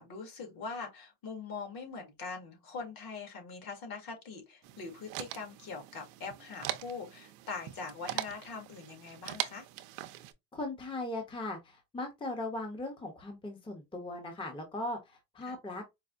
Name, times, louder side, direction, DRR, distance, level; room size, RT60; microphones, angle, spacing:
voice 1, 0.0-9.7 15.5-15.6, left 4 dB, 50° left, 1.7 m, -42 dB
sound 1, 4.6-10.3, right 15 dB, 85° right, 0.6 m, -41 dB
voice 2, 10.5-15.8, left 2 dB, 10° left, 0.8 m, -38 dB
4.7 x 2.1 x 2.5 m
supercardioid pair, 110°, 45 cm